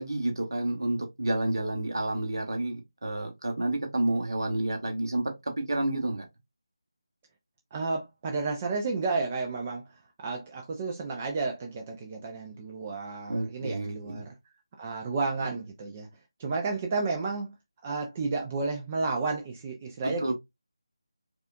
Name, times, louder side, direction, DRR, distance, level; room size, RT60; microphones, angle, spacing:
voice 1, 0.0-5.3 5.6-6.2 13.3-14.2 20.0-20.3, right 1 dB, 55° right, 1.2 m, -30 dB
voice 2, 7.7-14.3 14.8-16.1 16.4-17.5 17.8-20.3, right 3 dB, 20° right, 0.4 m, -32 dB
4.8 x 2.4 x 2.4 m
figure-of-eight pair, 160°, 2 cm